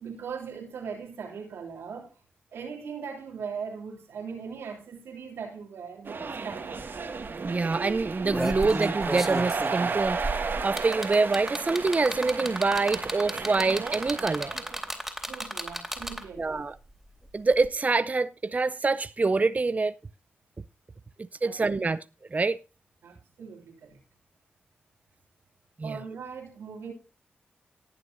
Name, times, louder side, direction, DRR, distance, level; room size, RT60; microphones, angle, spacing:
voice 1, 0.0-2.2 2.5-6.9 15.3-16.6 21.4-21.9 23.0-24.0 25.8-26.9, right 6 dB, 85° right, 2.9 m, -40 dB
sound 1, 6.0-14.8, right 4 dB, 60° right, 2.0 m, -33 dB
sound 2, 6.8-6.9 7.2-7.4 8.0-16.4 17.6-17.7, right 1 dB, 5° right, 3.3 m, -34 dB
voice 2, 7.4-14.5 16.4-16.8 17.3-19.9 21.4-22.0 22.3-22.6 25.8-26.0, right 3 dB, 40° right, 0.6 m, -26 dB
19.0 x 6.9 x 2.7 m
supercardioid pair, 45°, 4 cm